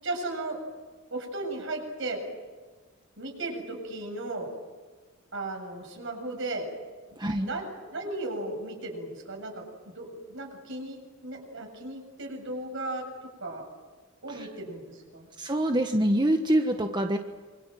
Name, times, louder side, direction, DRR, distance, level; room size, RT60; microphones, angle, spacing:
voice 1, 0.0-0.6 1.1-2.2 3.2-4.5 5.3-6.7 7.4-9.7 10.0-13.7 14.2-15.3, right 2 dB, 65° right, 3 dB, 7.7 m, -36 dB
voice 2, 7.2-7.5 14.3-14.5 15.4-17.2, right 1 dB, 20° right, 5 dB, 1.3 m, -25 dB
27.0 x 26.0 x 7.8 m, 1.4 s
head